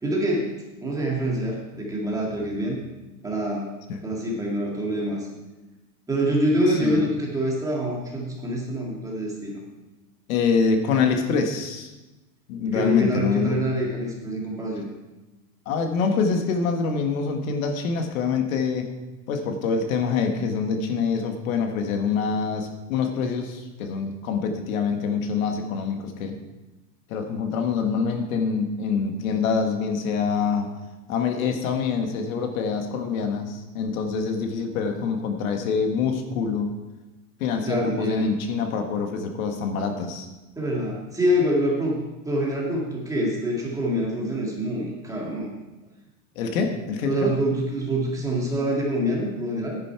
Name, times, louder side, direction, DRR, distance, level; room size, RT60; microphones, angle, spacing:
voice 1, 0.0-2.8 3.2-3.7 4.0-5.3 6.1-9.6 12.7-14.9 37.7-38.4 40.6-45.5 47.0-49.8, equal, 10° right, -3 dB, 2.1 m, -26 dB
voice 2, 10.3-11.9 12.5-13.7 15.6-18.9 19.3-26.4 27.1-30.7 31.1-36.7 37.4-40.3 46.3-47.3, left 5 dB, 65° left, 5 dB, 1.6 m, -25 dB
10.5 x 9.5 x 4.6 m, 1.1 s
supercardioid pair, 155°, 44 cm